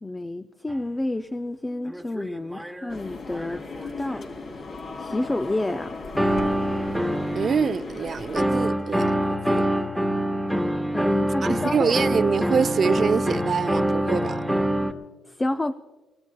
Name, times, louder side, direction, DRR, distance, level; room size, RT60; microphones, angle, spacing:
voice 1, 0.0-3.6 4.0-4.3 5.0-6.0 10.9-12.0 15.3-15.7, left 2 dB, 15° left, 0.5 m, -29 dB
sound 1, 0.7-0.8 1.9-2.9 3.3-4.3 6.2-7.7 8.4-14.9, right 1 dB, ahead, 1.2 m, -25 dB
sound 2, 2.9-8.5, left 3 dB, 55° left, 3.1 m, -37 dB
voice 2, 7.3-9.2 9.5-9.6 11.4-14.4, right 6 dB, 45° right, 0.5 m, -25 dB
25.0 x 19.5 x 2.3 m
cardioid pair, 90°, 0 cm